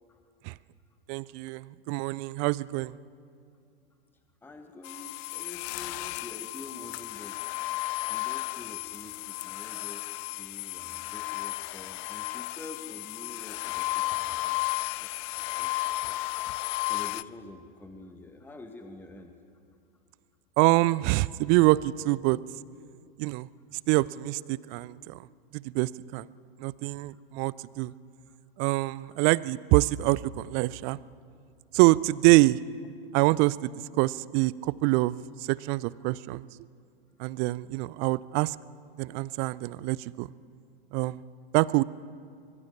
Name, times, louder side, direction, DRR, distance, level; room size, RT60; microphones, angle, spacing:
voice 1, 1.1-3.0 20.6-22.4 23.2-23.5 23.9-25.2 25.5-26.3 26.6-27.9 28.6-31.0 31.7-32.6 33.1-33.7 34.0-35.2 35.5-36.5 37.2-38.6 39.0-40.3 40.9-41.2 41.5-41.8, right 20 dB, 30° right, 21 dB, 0.5 m, -25 dB
voice 2, 4.4-7.8 8.1-14.7 15.0-15.1 15.4-16.2 16.8-19.4 27.1-27.2 28.3-28.4, left 2 dB, 5° left, 5 dB, 1.5 m, -47 dB
sound 1, 4.8-17.2, left 20 dB, 35° left, 0.5 m, -34 dB
25.0 x 21.5 x 7.2 m, 2.4 s
figure-of-eight pair, 100°, 29 cm